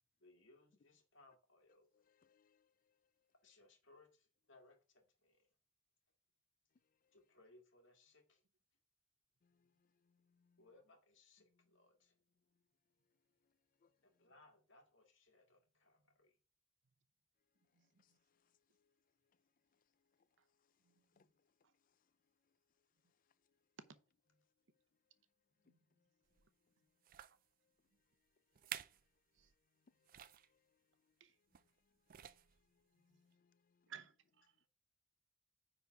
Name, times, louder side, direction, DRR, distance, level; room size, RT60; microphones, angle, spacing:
voice 1, 0.2-1.9 3.4-5.5 7.1-8.4 10.6-12.1 14.0-16.4, left 2 dB, 70° left, 2.1 m, -67 dB
voice 2, 2.2-2.7 9.4-9.7 10.1-10.6 13.8-13.9 21.2-21.3 30.1-30.3 32.2-32.4 32.9-33.9, left 5 dB, 45° left, 0.4 m, -76 dB
voice 3, 17.7-18.2 20.4-20.5 20.8-21.3 21.6-21.7 24.3-24.4 25.6-25.8 27.3-27.4 29.3-29.5 31.2-31.4 33.1-33.2 33.9-34.6, right 8 dB, 65° right, 0.7 m, -60 dB
sound 1, 26.3-26.5 27.0-27.4 28.1-28.2 28.5-29.1 29.4-29.5 30.0-30.5 31.5-31.8 32.1-32.6 33.3-33.4, right 11 dB, 45° right, 0.4 m, -51 dB
9.7 x 4.0 x 4.6 m
head